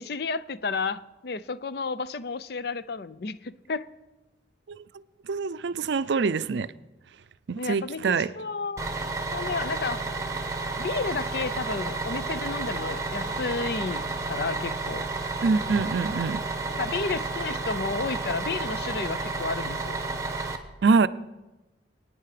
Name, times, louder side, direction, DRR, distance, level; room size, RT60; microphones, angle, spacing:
voice 1, 0.0-3.9 7.6-8.9 9.3-10.1 10.8-14.0 14.3-15.1 16.8-20.0, left 4 dB, 55° left, 0.5 m, -32 dB
voice 2, 5.3-6.7 7.5-8.3 15.4-16.4 20.8-21.1, right 4 dB, 70° right, 0.4 m, -24 dB
Bus, 8.8-20.6, right 3 dB, 15° right, 1.1 m, -31 dB
24.5 x 9.3 x 5.0 m
head